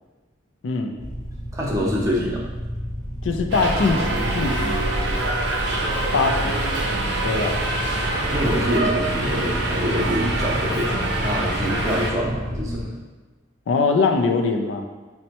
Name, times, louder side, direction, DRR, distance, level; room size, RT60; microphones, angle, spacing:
voice 1, 0.6-1.0 3.2-5.1 6.1-6.9 7.2-7.6 13.7-14.9, left 4 dB, 80° left, 4 dB, 0.4 m, -22 dB
sound 1, 1.0-12.8, equal, 20° left, 0.7 m, -31 dB
voice 2, 1.5-2.4 8.3-13.0, equal, 15° right, -4 dB, 0.6 m, -25 dB
Subway metro underground, 3.5-12.1, right 2 dB, 60° right, 0.5 m, -25 dB
5.2 x 2.1 x 2.8 m, 1.2 s
head